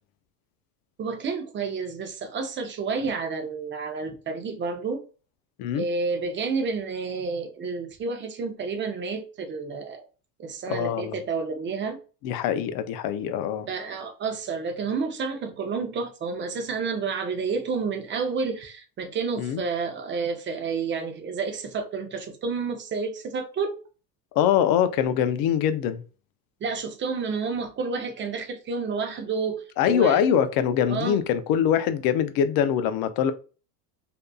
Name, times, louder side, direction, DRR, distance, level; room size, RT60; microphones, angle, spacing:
voice 1, 1.0-5.0 5.7-10.1 10.4-12.0 13.7-23.8 26.6-30.2 30.9-31.2, right 4 dB, 25° right, 0.5 m, -30 dB
voice 2, 10.7-11.2 12.2-13.7 19.4-19.6 24.3-26.0 29.8-33.3, left 9 dB, 50° left, 0.5 m, -23 dB
2.7 x 2.3 x 2.3 m
supercardioid pair, 100°, 49 cm